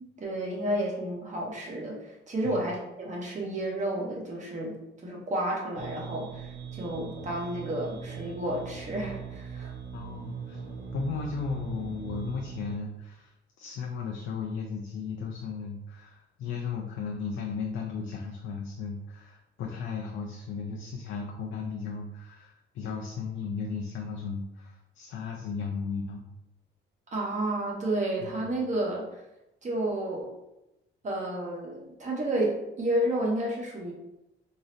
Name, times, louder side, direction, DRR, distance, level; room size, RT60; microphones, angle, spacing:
voice 1, 0.2-4.8 5.0-9.7 27.1-29.0 29.6-30.3 31.0-33.9, right 1 dB, 40° right, -2 dB, 1.0 m, -31 dB
sound 1, 5.7-12.8, right 7 dB, 80° right, 0.8 m, -40 dB
voice 2, 9.9-10.6 10.9-13.3 13.6-26.2 28.2-28.3, left 5 dB, 75° left, 0 dB, 0.4 m, -35 dB
3.7 x 2.0 x 2.7 m, 0.92 s
cardioid pair, 90°, 20 cm